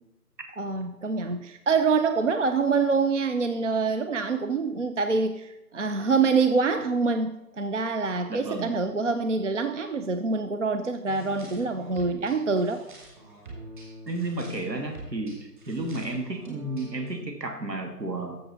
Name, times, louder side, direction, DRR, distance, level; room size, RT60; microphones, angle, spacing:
voice 1, 0.6-12.8, right 4 dB, 50° right, 8 dB, 0.6 m, -25 dB
voice 2, 8.3-8.8 14.1-18.4, right 2 dB, 85° right, 4 dB, 2.4 m, -32 dB
sound 1, 11.0-17.1, right 1 dB, 30° right, 2.3 m, -45 dB
14.0 x 6.9 x 4.2 m, 0.91 s
figure-of-eight pair, 165°, 49 cm